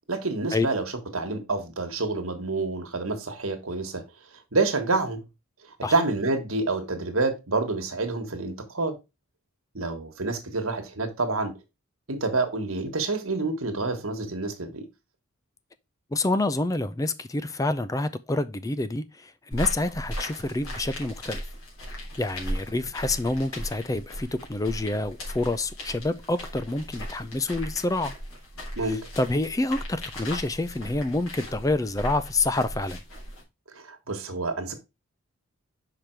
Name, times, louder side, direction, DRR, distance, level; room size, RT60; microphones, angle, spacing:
voice 1, 0.1-0.8 1.1-4.0 4.5-5.2 5.8-9.0 9.7-11.6 12.1-14.8 28.8-29.0 33.7-34.7, right 3 dB, 80° right, 1.5 m, -28 dB
voice 2, 16.1-21.4 21.9-28.1 28.9-33.0, left 2 dB, 15° left, 0.4 m, -27 dB
sound 1, 19.5-33.4, equal, 85° left, 3.6 m, -37 dB
5.9 x 5.1 x 4.5 m
head